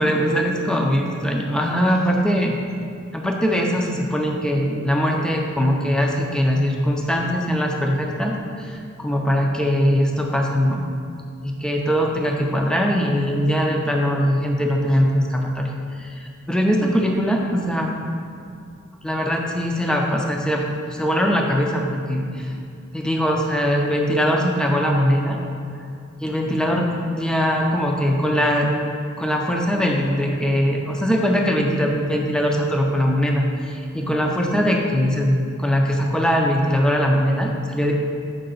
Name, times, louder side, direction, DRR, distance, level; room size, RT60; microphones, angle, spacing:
voice 1, 0.0-2.5 3.1-10.8 11.4-15.7 16.0-18.0 19.0-22.5 22.9-25.4 26.2-28.7 29.2-37.9, equal, 5° left, 0 dB, 0.5 m, -21 dB
6.6 x 5.2 x 3.9 m, 2.4 s
head